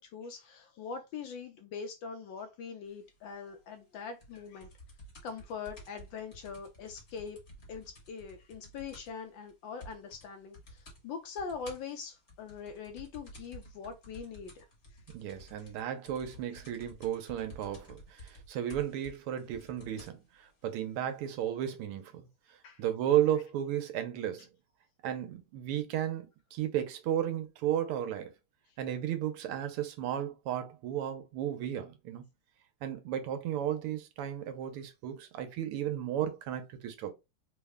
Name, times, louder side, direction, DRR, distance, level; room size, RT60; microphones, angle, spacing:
voice 1, 0.0-4.7 5.2-7.4 7.7-14.7 14.9-15.0 15.6-15.7 22.6-22.8, left 5 dB, 75° left, 1.1 m, -42 dB
sound 1, 4.2-9.2 9.5-9.6 9.8-10.3 10.5-11.0 11.4-20.2 21.0-21.1, equal, 40° left, 1.0 m, -52 dB
voice 2, 15.1-22.2 22.8-24.5 25.0-28.3 28.8-32.2 32.8-37.1, right 11 dB, 85° right, 1.6 m, -34 dB
3.8 x 2.1 x 3.5 m
omnidirectional pair, 2.4 m